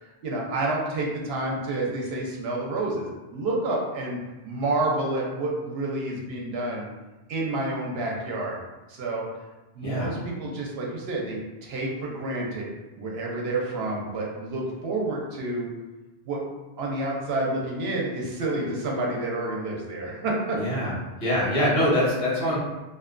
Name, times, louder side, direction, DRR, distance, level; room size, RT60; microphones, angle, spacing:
voice 1, 0.2-4.2 4.4-6.9 7.3-8.6 8.9-9.2 9.7-12.7 13.0-15.7 16.3-16.4 16.8-20.6, right 2 dB, 75° right, -2 dB, 0.8 m, -29 dB
voice 2, 20.5-20.9 21.2-22.6, left 1 dB, 65° left, -7 dB, 1.1 m, -24 dB
2.6 x 2.1 x 2.4 m, 1.1 s
omnidirectional pair, 1.1 m